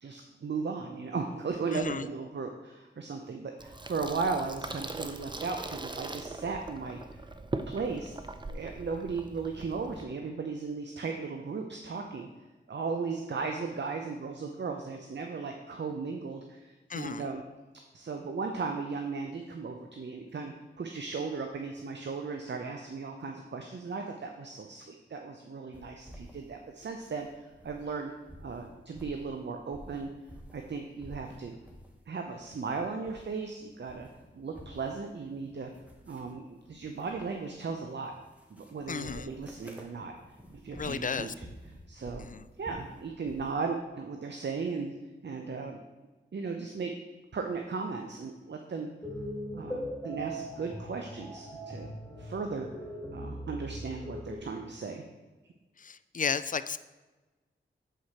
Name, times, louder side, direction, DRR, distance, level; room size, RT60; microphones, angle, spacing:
voice 1, 0.0-7.0 7.7-8.2 8.5-12.3 12.7-17.4 17.9-28.1 28.4-30.1 30.5-31.6 32.1-34.1 34.3-35.7 36.1-38.1 38.5-40.1 40.5-41.3 41.9-42.3 42.6-44.9 45.2-45.8 46.3-46.9 47.3-48.9 49.5-52.7 53.1-55.0, right 4 dB, 60° right, 4 dB, 0.7 m, -36 dB
voice 2, 1.7-2.1 16.9-17.2 38.9-39.3 40.7-41.3 42.3-42.4 55.8-56.8, left 6 dB, 40° left, 14 dB, 0.4 m, -33 dB
Water tap faucet / Sink (filling or washing), 3.6-10.0, right 2 dB, 20° right, 0.6 m, -41 dB
sound 1, 25.7-28.0 28.2-30.7 31.0-32.0 32.3-33.5 33.8-43.5, equal, 5° right, 1.3 m, -51 dB
sound 2, 49.0-54.4, equal, 10° left, 1.9 m, -40 dB
7.8 x 4.8 x 4.2 m, 1.2 s
cardioid pair, 40°, 21 cm